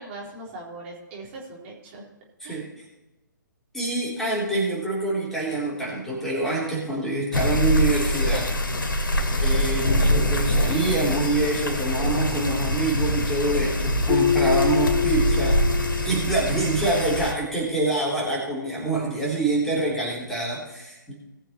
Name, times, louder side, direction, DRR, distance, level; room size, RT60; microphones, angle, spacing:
voice 1, 0.0-2.1 2.4-2.7, right 2 dB, 35° right, -4 dB, 3.8 m, -40 dB
voice 2, 3.7-8.5 9.4-15.6 16.1-21.1, right 2 dB, 5° left, -7 dB, 3.5 m, -26 dB
sound 1, 7.3-17.3, equal, 85° left, 2.1 m, -24 dB
Keyboard (musical), 14.1-16.9, left 8 dB, 35° left, 0.4 m, -26 dB
19.5 x 6.6 x 4.4 m, 1.0 s
figure-of-eight pair, 140°, 11 cm